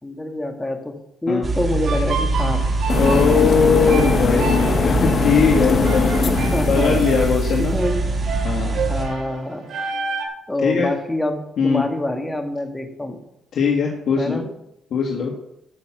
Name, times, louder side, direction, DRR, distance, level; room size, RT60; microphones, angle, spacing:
voice 1, 0.0-2.7 6.2-7.0 7.6-8.0 8.3-9.7 10.5-13.2 14.2-14.5, left 1 dB, 10° left, 4 dB, 2.0 m, -26 dB
sound 1, 1.4-9.1, right 2 dB, 35° right, 2.8 m, -23 dB
sound 2, 1.8-10.2, right 5 dB, 70° right, 2.6 m, -31 dB
sound 3, 2.9-7.7, left 5 dB, 45° left, 1.1 m, -21 dB
voice 2, 3.0-6.1 6.7-7.8 8.4-8.8 10.6-10.9 11.6-11.8 13.5-14.4 14.9-15.3, left 6 dB, 65° left, -1 dB, 1.8 m, -20 dB
14.5 x 5.9 x 6.1 m, 0.80 s
cardioid pair, 90°, 0 cm